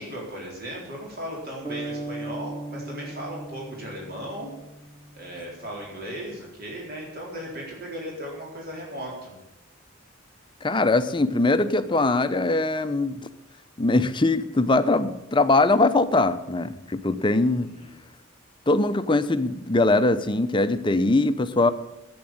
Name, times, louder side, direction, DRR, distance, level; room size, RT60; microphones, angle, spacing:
voice 1, 0.0-4.5 5.1-9.3 17.6-17.9, equal, 50° right, -2 dB, 4.1 m, -36 dB
sound 1, 1.6-5.6, right 2 dB, 25° right, 2.9 m, -37 dB
voice 2, 10.6-13.2 13.8-17.7 18.7-21.7, left 2 dB, 25° left, 11 dB, 0.7 m, -21 dB
11.0 x 8.8 x 8.8 m, 0.91 s
head